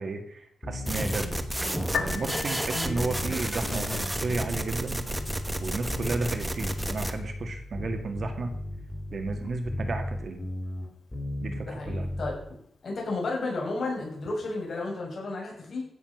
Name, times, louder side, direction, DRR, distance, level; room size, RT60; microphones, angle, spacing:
voice 1, 0.0-5.0 5.6-8.5 9.1-10.4 11.4-12.1, right 3 dB, 45° right, 6 dB, 2.0 m, -33 dB
sound 1, 0.6-12.4, left 1 dB, 15° left, 3.8 m, -36 dB
sound 2, 0.9-7.1, right 1 dB, 5° right, 1.2 m, -31 dB
Piano, 1.8-14.8, left 6 dB, 70° left, 1.5 m, -44 dB
voice 2, 11.7-12.3 12.8-15.8, left 3 dB, 50° left, -2 dB, 6.8 m, -32 dB
15.5 x 7.1 x 6.6 m, 0.71 s
wide cardioid pair, 140°, 0 cm